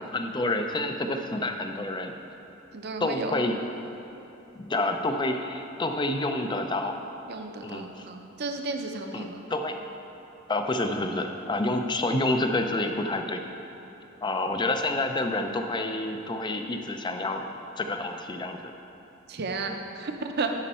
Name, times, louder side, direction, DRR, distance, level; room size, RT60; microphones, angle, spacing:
voice 1, 0.1-2.1 3.0-3.6 4.6-7.0 7.6-8.0 9.1-9.8 10.5-13.4 14.2-17.5 17.8-18.6, left 2 dB, 20° left, 5 dB, 0.4 m, -28 dB
voice 2, 2.7-3.3 7.3-9.4 19.3-20.5, right 3 dB, 50° right, 5 dB, 0.6 m, -33 dB
11.0 x 5.2 x 4.2 m, 2.9 s
head